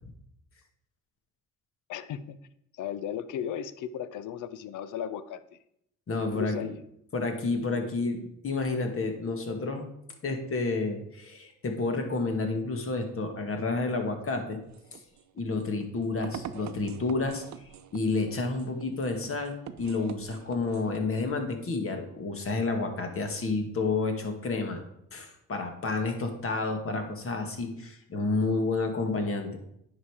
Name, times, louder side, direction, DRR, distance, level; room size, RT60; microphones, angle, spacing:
voice 1, 1.9-2.4 2.7-5.6 6.1-6.8, left 9 dB, 80° left, 15 dB, 0.7 m, -36 dB
voice 2, 6.1-6.6 7.1-9.9 10.2-14.6 14.9-15.0 15.4-24.8 25.1-29.6, left 3 dB, 45° left, 5 dB, 1.8 m, -30 dB
sound 1, 14.5-21.2, right 9 dB, 65° right, 0.7 m, -45 dB
9.7 x 5.4 x 4.9 m, 0.76 s
cardioid pair, 90°, 30 cm